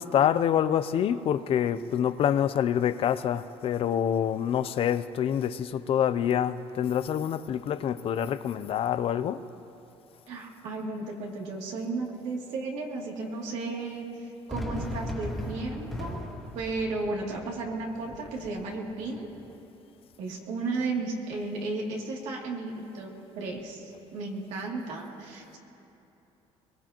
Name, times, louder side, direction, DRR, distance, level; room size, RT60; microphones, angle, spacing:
voice 1, 0.0-9.4, left 9 dB, 50° left, 0.5 m, -26 dB
voice 2, 10.3-16.2 16.5-19.3 20.2-25.6, right 3 dB, 80° right, 2.8 m, -34 dB
Fireworks, 14.5-19.5, left 1 dB, ahead, 2.1 m, -38 dB
22.5 x 21.0 x 3.0 m
cardioid pair, 115°, 12 cm